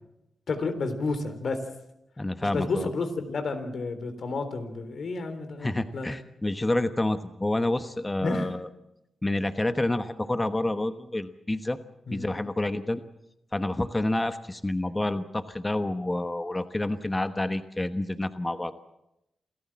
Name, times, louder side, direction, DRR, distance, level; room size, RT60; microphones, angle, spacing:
voice 1, 0.5-1.6 2.4-6.1 8.2-8.5 12.1-12.3, left 3 dB, 65° left, 9 dB, 3.6 m, -31 dB
voice 2, 2.2-2.9 5.6-8.7 9.2-11.8 12.1-13.0 13.5-18.9, left 1 dB, 20° left, 10 dB, 1.1 m, -28 dB
27.5 x 14.0 x 7.4 m, 0.86 s
cardioid pair, 65°, 0 cm